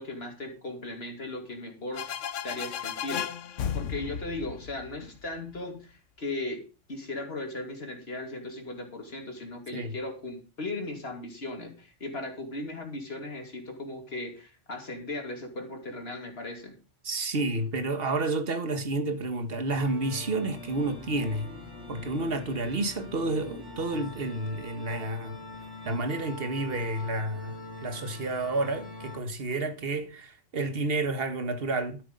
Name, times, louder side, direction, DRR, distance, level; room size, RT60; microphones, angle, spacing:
voice 1, 0.0-2.0 2.4-3.3 3.7-6.6 6.9-16.8, left 2 dB, 55° left, 2.8 m, -37 dB
sound 1, 1.9-5.6, left 9 dB, 85° left, 1.1 m, -34 dB
voice 2, 17.0-21.5 21.9-25.4 25.8-32.0, right 2 dB, 55° right, 1.5 m, -30 dB
sound 2, 19.7-29.2, left 2 dB, 90° right, 4.6 m, -43 dB
12.5 x 7.9 x 5.2 m
omnidirectional pair, 1.2 m